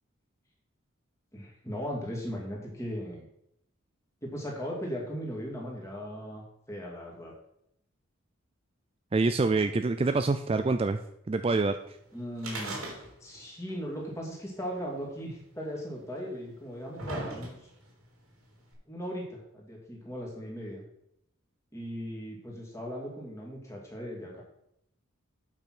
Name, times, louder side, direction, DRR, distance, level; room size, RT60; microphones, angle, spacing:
voice 1, 1.3-3.3 4.2-7.3 12.1-12.8 13.2-17.6 18.9-20.8 21.7-24.4, equal, 15° left, -2 dB, 2.5 m, -38 dB
voice 2, 9.1-11.0 11.3-12.0, right 3 dB, 25° right, 9 dB, 0.3 m, -26 dB
sound 1, 12.4-13.4 13.7-13.8 14.8-14.9 15.8-15.9 16.5-17.9 18.7-18.8, right 2 dB, 85° right, 3.4 m, -38 dB
8.7 x 5.8 x 6.1 m, 0.76 s
head